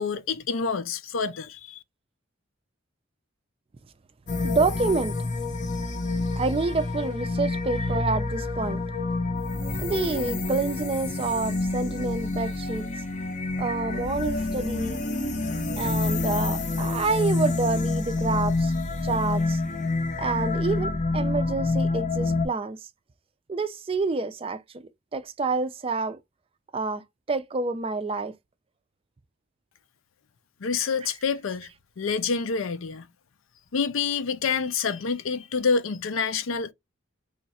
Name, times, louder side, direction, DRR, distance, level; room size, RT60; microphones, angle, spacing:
voice 1, 0.0-1.8 30.6-31.7 32.0-33.1 33.7-36.7, left 5 dB, 80° left, 0.5 m, -27 dB
sound 1, 4.3-22.5, left 3 dB, 35° left, 0.6 m, -28 dB
voice 2, 4.4-5.2 6.4-8.8 9.8-12.9 13.6-15.0 15.8-18.7 19.0-19.6 20.2-22.8 23.5-26.2 26.7-28.3 31.0-31.1, right 3 dB, 30° right, 0.4 m, -28 dB
3.1 x 2.4 x 4.0 m
head